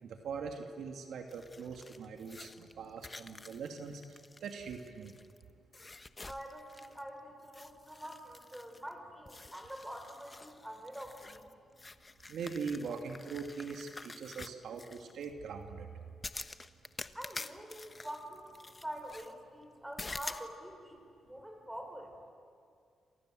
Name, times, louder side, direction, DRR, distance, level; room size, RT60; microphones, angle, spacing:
voice 1, 0.0-4.0 4.4-5.1 12.3-15.9, right 5 dB, 75° right, 4 dB, 2.3 m, -41 dB
sound 1, 1.3-5.4 5.7-7.1 7.4-8.9 9.3-15.3 16.2-19.3 20.0-20.5, left 3 dB, 25° left, 1.1 m, -48 dB
voice 2, 6.2-11.5 17.1-22.2, equal, 5° right, 4 dB, 6.0 m, -46 dB
29.0 x 26.0 x 7.7 m, 2.3 s
cardioid pair, 85°, 0 cm